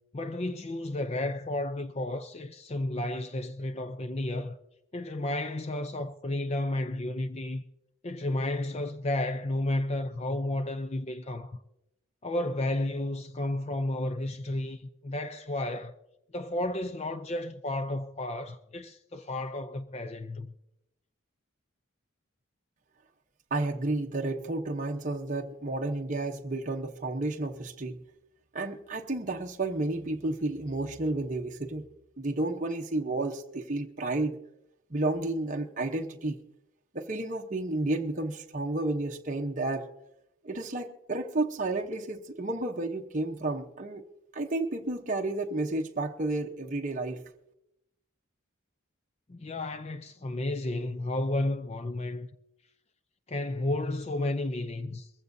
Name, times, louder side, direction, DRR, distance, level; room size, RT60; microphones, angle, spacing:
voice 1, 0.1-4.6 4.9-7.6 8.0-11.6 12.2-15.9 16.3-20.5 49.3-52.3 53.3-55.1, left 1 dB, 30° left, 0.5 m, -32 dB
voice 2, 23.5-28.0 28.5-31.9 32.2-34.4 34.9-36.4 36.9-39.9 40.4-44.0 44.3-47.2, right 2 dB, 40° right, 0.9 m, -31 dB
21.5 x 15.0 x 2.7 m
head